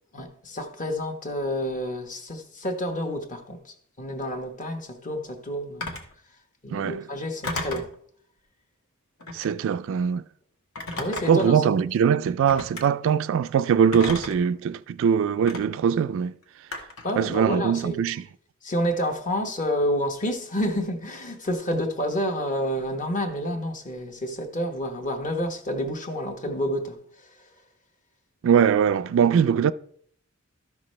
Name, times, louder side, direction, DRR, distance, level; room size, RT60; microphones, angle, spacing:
voice 1, 0.1-5.9 6.6-7.9 11.0-11.7 14.0-14.1 17.0-18.0 18.6-27.0, equal, 40° left, 1.1 m, -29 dB
Telephone, 5.8-6.1 7.4-7.9 9.2-9.6 10.8-11.5 12.5-12.8 13.9-14.5 15.5-15.6 16.7-17.1, left 2 dB, 90° left, 1.4 m, -33 dB
voice 2, 6.7-7.0 9.3-10.2 11.3-16.3 17.2-18.2 28.4-29.7, right 7 dB, 65° right, 0.3 m, -22 dB
13.0 x 6.0 x 3.2 m
head